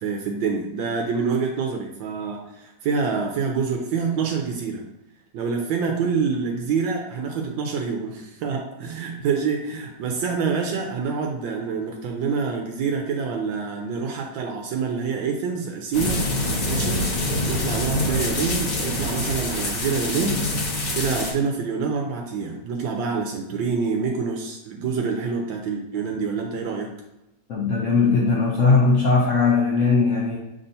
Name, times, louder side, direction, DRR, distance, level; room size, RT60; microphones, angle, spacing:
voice 1, 0.0-4.8 5.3-16.2 16.7-17.0 17.5-20.4 20.9-26.9, right 5 dB, 85° right, 2 dB, 1.3 m, -26 dB
sound 1, 15.9-21.3, left 1 dB, 55° left, 1.4 m, -25 dB
voice 2, 27.5-30.4, left 4 dB, 80° left, -2 dB, 0.6 m, -19 dB
5.4 x 3.5 x 2.6 m, 0.92 s
omnidirectional pair, 2.0 m